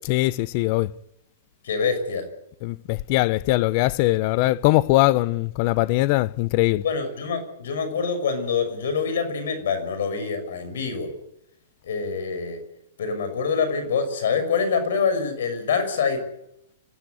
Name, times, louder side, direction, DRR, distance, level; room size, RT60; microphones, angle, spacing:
voice 1, 0.1-0.9 2.6-6.8, left 19 dB, 45° left, 0.8 m, -21 dB
voice 2, 1.6-2.3 6.8-11.1 11.8-12.6 13.0-16.3, left 5 dB, 75° left, 6.4 m, -25 dB
26.0 x 16.5 x 8.3 m
hypercardioid pair, 145°, 0 cm